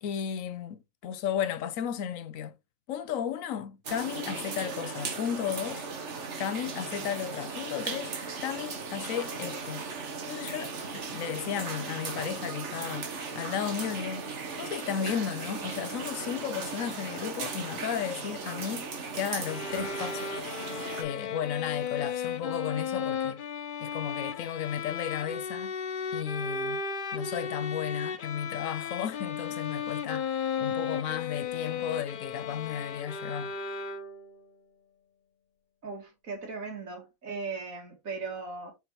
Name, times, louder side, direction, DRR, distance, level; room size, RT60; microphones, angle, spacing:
voice 1, 0.0-2.5 2.9-5.8 6.4-8.1 8.4-9.8 10.3-14.3 14.6-18.9 19.1-20.4 21.0-23.4 23.8-25.7 26.1-26.8 27.1-33.5, left 9 dB, 75° left, 1.1 m, -34 dB
Dripping ceiling in an old limekiln, 3.9-21.0, right 4 dB, 60° right, 1.5 m, -37 dB
sound 1, 19.4-34.4, left 6 dB, 55° left, 0.6 m, -35 dB
voice 2, 35.8-38.7, right 4 dB, 80° right, 2.1 m, -38 dB
6.0 x 5.2 x 3.1 m
omnidirectional pair, 1.4 m